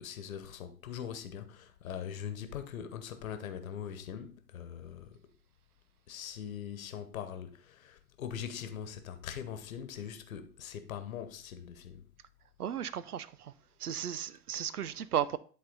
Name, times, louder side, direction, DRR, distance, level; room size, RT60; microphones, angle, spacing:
voice 1, 0.0-5.2 6.1-12.1, left 8 dB, 65° left, 1.2 m, -42 dB
voice 2, 12.6-13.5 13.8-15.4, right 9 dB, 80° right, 0.6 m, -35 dB
10.5 x 4.0 x 4.0 m
figure-of-eight pair, 100°, 45 cm